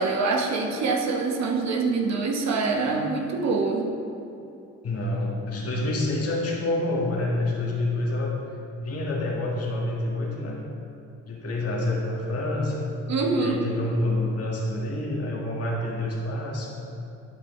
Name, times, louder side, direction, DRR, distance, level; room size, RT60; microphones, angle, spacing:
voice 1, 0.0-3.9 13.1-13.6, right 4 dB, 60° right, 2 dB, 1.0 m, -25 dB
voice 2, 4.8-8.4 8.8-10.6 11.3-13.0 13.3-16.8, left 1 dB, 50° left, -2 dB, 1.6 m, -27 dB
11.0 x 4.8 x 3.1 m, 2.7 s
cardioid pair, 90°, 30 cm